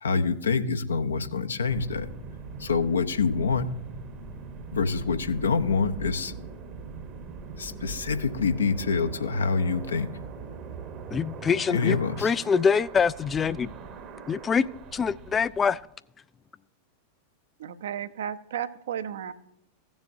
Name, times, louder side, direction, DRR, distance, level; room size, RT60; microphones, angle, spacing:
voice 1, 0.0-2.1 2.6-3.7 4.7-6.3 7.6-10.1 11.7-12.3, left 5 dB, 70° left, 0.7 m, -26 dB
sound 1, 1.7-15.8, right 5 dB, 35° right, 0.9 m, -41 dB
voice 2, 11.1-13.7 14.3-14.7 14.9-15.8, left 6 dB, 20° left, 0.3 m, -24 dB
voice 3, 17.6-19.3, right 9 dB, 60° right, 0.6 m, -33 dB
16.5 x 7.0 x 2.6 m
figure-of-eight pair, 90°, 0 cm